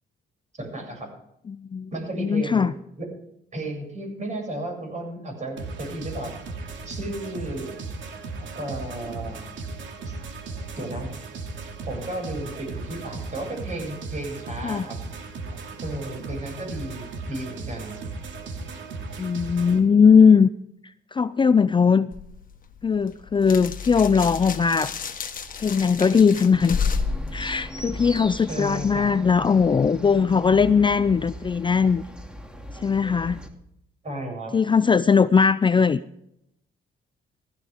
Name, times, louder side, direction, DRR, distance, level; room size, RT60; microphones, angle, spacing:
voice 1, 0.6-1.1 1.9-3.1 3.5-6.3 6.9-7.8 8.6-9.4 10.1-10.2 10.7-11.1 11.9-15.0 15.8-18.0 28.5-29.1 34.0-34.6, right 1 dB, 35° right, 3 dB, 7.1 m, -33 dB
voice 2, 1.5-1.9 2.2-2.7 14.6-14.8 19.2-20.5 21.1-22.1 22.8-24.9 25.6-26.8 27.3-32.0 32.7-33.4 34.5-36.0, left 6 dB, 25° left, 15 dB, 0.4 m, -19 dB
sound 1, 5.6-19.8, right 3 dB, 70° right, 2.6 m, -36 dB
sound 2, 22.1-28.4, left 5 dB, 45° left, 1.5 m, -31 dB
sound 3, 26.5-33.5, equal, 5° right, 2.5 m, -38 dB
15.5 x 15.5 x 3.6 m, 0.76 s
cardioid pair, 90°, 20 cm